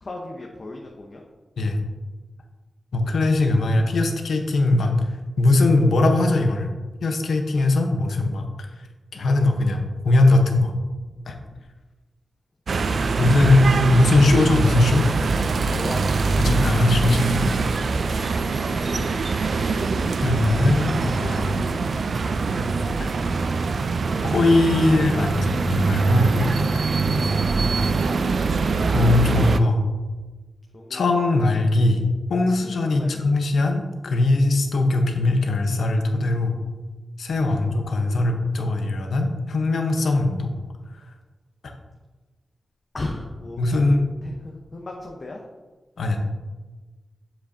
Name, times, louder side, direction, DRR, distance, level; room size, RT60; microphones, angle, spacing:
voice 1, 0.0-1.2 13.1-13.2 15.7-16.5 18.0-18.3 27.2-27.4 27.8-28.5 30.7-31.0 33.0-33.2 37.5-37.6 42.9-44.0 44.2-45.4, left 2 dB, 50° left, 0 dB, 0.8 m, -36 dB
voice 2, 2.9-5.0 5.4-6.7 7.0-8.5 9.1-10.7 11.3-11.4 13.2-15.1 16.4-17.5 18.9-19.1 20.2-21.6 23.0-23.1 24.2-26.3 26.7-26.8 28.9-29.8 30.9-32.0 32.3-36.6 37.2-40.5 41.6-41.7 43.6-44.0 46.0-46.2, left 2 dB, 90° left, 4 dB, 0.8 m, -20 dB
sound 1, 12.7-29.6, right 4 dB, 70° right, 0.3 m, -23 dB
7.3 x 7.0 x 2.6 m, 1.3 s
cardioid pair, 70°, 0 cm